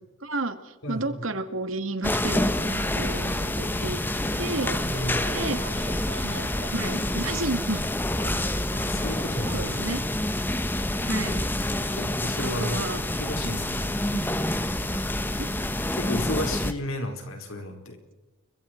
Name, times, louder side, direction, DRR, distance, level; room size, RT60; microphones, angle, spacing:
voice 1, 0.2-4.0 4.3-4.8 5.3-5.6 6.2-7.8 9.5-10.0 11.0-11.4 12.4-13.0 13.4-13.6 14.1-14.3 15.4-15.5, right 2 dB, 80° right, 9 dB, 2.1 m, -32 dB
sound 1, 2.0-16.7, left 1 dB, 10° left, 1.1 m, -27 dB
sound 2, 3.0-10.0, right 3 dB, 65° right, 1.5 m, -43 dB
voice 2, 4.9-5.2 8.7-9.9 11.8-12.8 13.2-14.0 15.9-18.0, left 1 dB, 85° left, 4 dB, 4.6 m, -33 dB
29.5 x 24.0 x 4.6 m, 1.1 s
head